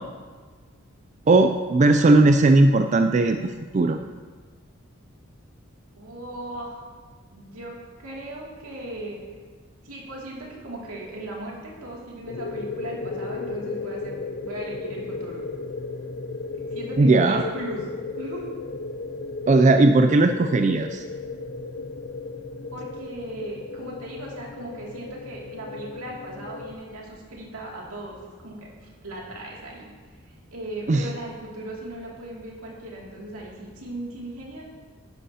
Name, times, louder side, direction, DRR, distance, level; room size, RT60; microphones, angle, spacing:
voice 1, 1.3-4.0 17.0-17.4 19.5-21.0 30.9-31.1, right 2 dB, 35° right, 6 dB, 0.3 m, -18 dB
voice 2, 5.9-6.8 7.3-9.2 9.8-15.5 16.5-17.8 18.2-18.5 22.7-28.7 29.0-29.9 30.5-34.6, right 1 dB, 85° right, -3 dB, 2.4 m, -37 dB
sound 1, 12.3-26.7, left 3 dB, 50° left, 0.4 m, -35 dB
11.0 x 10.0 x 2.8 m, 1.5 s
head